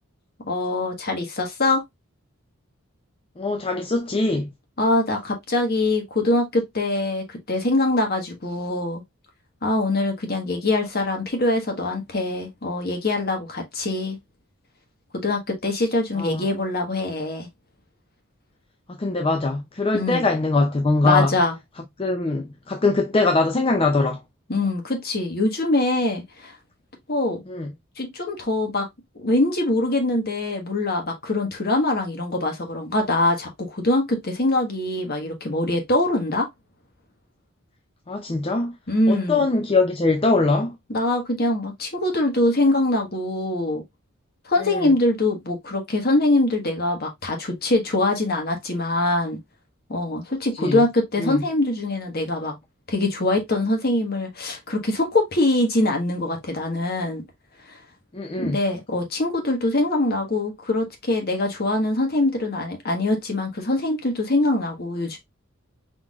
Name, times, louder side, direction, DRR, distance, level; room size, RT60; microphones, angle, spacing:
voice 1, 0.5-1.8 4.8-9.0 9.6-14.2 15.2-17.5 19.9-20.2 21.0-21.5 24.5-26.5 27.1-27.4 28.0-28.9 29.2-36.5 38.9-39.4 40.9-43.8 44.4-49.4 49.9-52.6 52.9-57.2 58.4-65.2, left 2 dB, 45° left, 1.4 m, -23 dB
voice 2, 3.4-4.5 16.2-16.5 19.0-21.4 22.0-24.2 27.5-27.7 38.1-38.8 39.1-40.7 44.6-44.9 50.6-50.8 51.2-51.4 58.1-58.6, left 3 dB, 25° left, 0.5 m, -22 dB
4.7 x 4.0 x 2.3 m
head